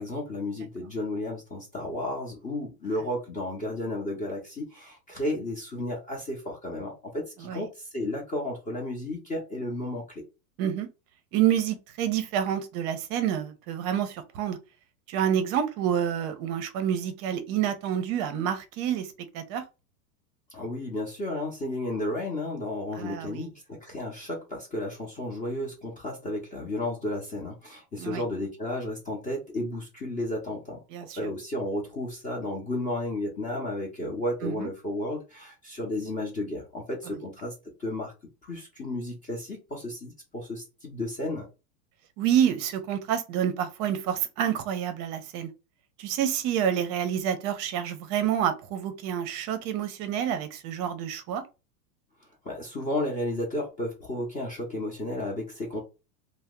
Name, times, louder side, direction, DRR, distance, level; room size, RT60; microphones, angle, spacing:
voice 1, 0.0-10.3 20.5-30.8 31.1-37.5 37.8-38.1 38.4-41.5 52.4-55.8, left 1 dB, 15° left, 0.6 m, -33 dB
voice 2, 11.3-14.6 15.1-19.6 23.0-23.5 28.0-28.2 30.9-31.2 34.4-34.7 37.1-37.2 42.2-45.5 46.0-51.4, right 9 dB, 35° right, 0.6 m, -28 dB
2.7 x 2.1 x 3.5 m
supercardioid pair, 130°, 50 cm